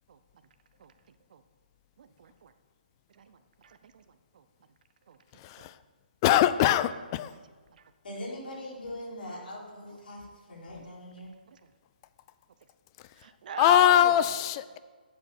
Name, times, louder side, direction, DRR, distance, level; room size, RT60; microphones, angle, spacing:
voice 1, 2.0-2.5 3.1-4.0 4.3-4.4 5.1-5.2 5.6-5.7 7.3-7.4 7.7-7.8 10.8-10.9 11.5-11.6 13.2-14.1, right 7 dB, 55° right, 10 dB, 0.7 m, -39 dB
voice 2, 5.4-5.7 6.2-7.3 13.6-14.8, left 12 dB, 30° left, 15 dB, 0.4 m, -22 dB
voice 3, 8.0-11.3, left 1 dB, 70° left, -4 dB, 4.2 m, -41 dB
11.5 x 7.8 x 5.8 m, 1.4 s
hypercardioid pair, 150°, 5 cm